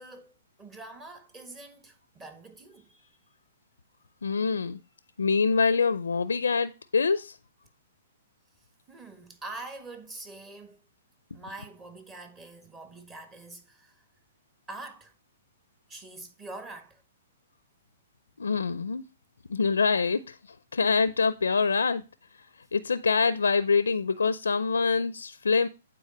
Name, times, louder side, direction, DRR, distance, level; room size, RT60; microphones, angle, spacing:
voice 1, 0.0-3.2 8.9-10.8 11.3-14.0 14.7-15.1 15.9-17.0, right 2 dB, 20° right, 1.5 m, -44 dB
voice 2, 4.2-4.8 5.2-7.4 18.4-19.0 19.5-22.0 22.3-22.4 22.7-25.7, left 5 dB, 90° left, 0.5 m, -25 dB
9.1 x 4.0 x 5.3 m
hypercardioid pair, 130°, 0 cm